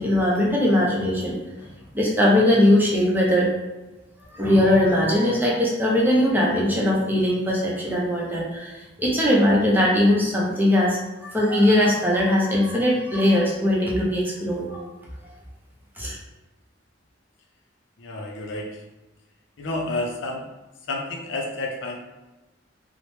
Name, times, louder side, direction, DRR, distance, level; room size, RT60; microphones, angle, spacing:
voice 1, 0.0-1.4 1.9-3.5 4.3-14.8 16.0-16.2, left 1 dB, 10° right, -4 dB, 0.6 m, -20 dB
voice 2, 18.0-18.8 19.6-20.4 20.9-22.0, left 2 dB, 70° left, 1 dB, 0.5 m, -30 dB
3.0 x 2.0 x 3.1 m, 1.1 s
head